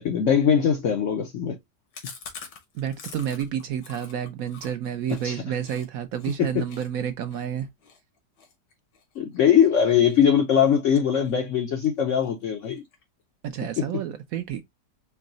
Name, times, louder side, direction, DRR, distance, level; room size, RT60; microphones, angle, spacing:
voice 1, 0.0-1.6 5.2-5.4 6.4-6.6 9.2-12.8 13.8-13.9, left 8 dB, 65° left, 0.7 m, -21 dB
Chewing mastication, 1.9-5.9 6.2-6.4 6.7-9.7 10.1-10.4 10.7-11.6 11.8-11.9 12.2-12.3 12.6-13.2, left 5 dB, 85° left, 1.8 m, -45 dB
voice 2, 2.7-7.7 13.4-14.6, right 9 dB, 70° right, 0.9 m, -30 dB
4.5 x 2.1 x 3.8 m
omnidirectional pair, 1.8 m